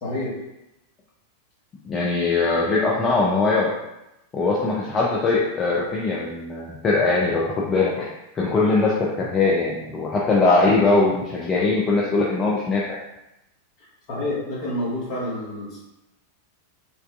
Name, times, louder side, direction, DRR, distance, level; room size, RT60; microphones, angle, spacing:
voice 1, 0.0-0.4 14.1-15.8, left 1 dB, 45° left, -6 dB, 1.4 m, -28 dB
voice 2, 1.9-3.7 4.3-8.1 8.3-13.0, left 3 dB, 25° left, -4 dB, 0.5 m, -21 dB
4.6 x 2.5 x 2.4 m, 0.92 s
figure-of-eight pair, 90°, 0 cm